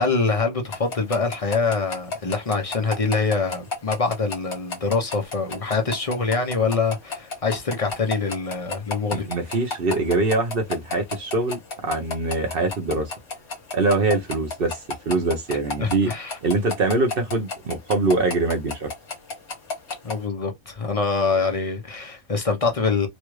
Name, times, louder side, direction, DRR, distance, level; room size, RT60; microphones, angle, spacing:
voice 1, 0.0-9.3 15.8-16.4 20.0-23.1, left 4 dB, 35° left, 0.6 m, -24 dB
sound 1, 0.7-20.2, left 3 dB, 55° left, 1.4 m, -31 dB
voice 2, 9.1-13.1 13.7-16.1 16.4-18.9, right 3 dB, 50° right, 0.8 m, -23 dB
3.1 x 2.4 x 3.1 m
omnidirectional pair, 1.4 m